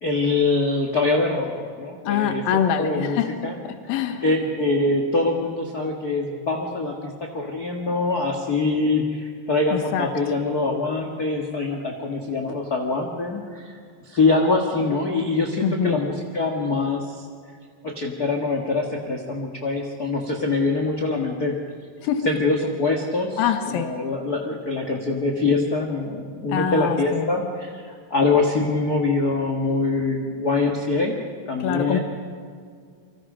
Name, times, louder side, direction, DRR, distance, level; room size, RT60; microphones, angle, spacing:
voice 1, 0.0-2.5 2.8-3.6 4.2-13.8 14.0-17.2 17.8-21.5 22.2-23.4 23.7-31.2 31.5-32.0, left 3 dB, 35° left, 1 dB, 1.6 m, -24 dB
voice 2, 2.0-3.3 3.9-4.2 9.7-10.1 15.6-16.0 22.0-22.3 23.4-23.9 26.5-27.4 31.6-32.0, left 8 dB, 75° left, 7 dB, 3.1 m, -24 dB
28.5 x 25.0 x 5.1 m, 2.1 s
omnidirectional pair, 4.4 m